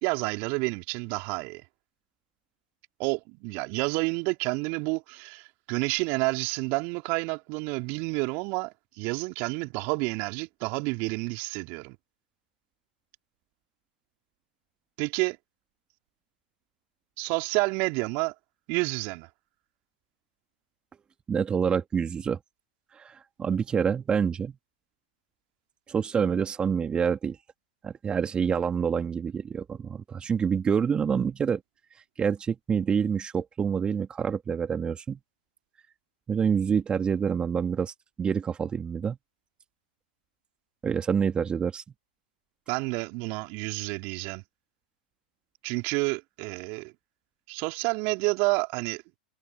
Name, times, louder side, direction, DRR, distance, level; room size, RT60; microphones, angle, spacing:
voice 1, 0.0-1.6 3.0-12.0 15.0-15.4 17.2-18.3 18.7-19.3 42.7-44.4 45.6-46.9 47.5-49.0, right 29 dB, 45° right, 3.2 m, -29 dB
voice 2, 21.3-22.4 22.9-24.5 25.9-27.4 27.8-31.6 32.2-35.2 36.3-39.2 40.8-41.8, right 7 dB, 20° right, 2.4 m, -27 dB
figure-of-eight pair, 100°, 5 cm